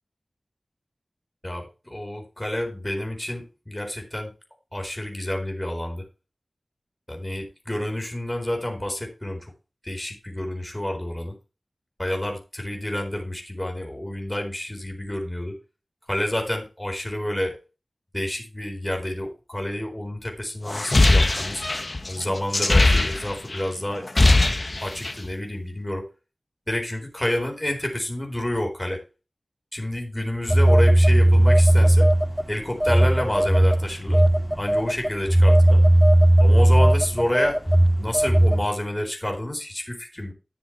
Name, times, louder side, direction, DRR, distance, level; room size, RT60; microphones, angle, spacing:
voice 1, 1.4-4.3 4.7-6.0 7.1-9.5 9.8-11.4 12.0-15.6 16.1-17.6 18.1-21.6 22.0-24.1 24.8-26.1 26.7-29.0 29.7-32.1 32.5-34.2 34.5-35.8 36.4-37.6 38.0-40.3, left 1 dB, 15° left, 2 dB, 4.3 m, -29 dB
sound 1, 20.7-23.6 23.9-25.3, left 2 dB, 45° left, 1.4 m, -20 dB
Telephone, 30.5-32.4 32.8-38.7, right 1 dB, 5° right, 0.8 m, -17 dB
11.5 x 6.9 x 4.6 m, 0.30 s
wide cardioid pair, 45°, 0 cm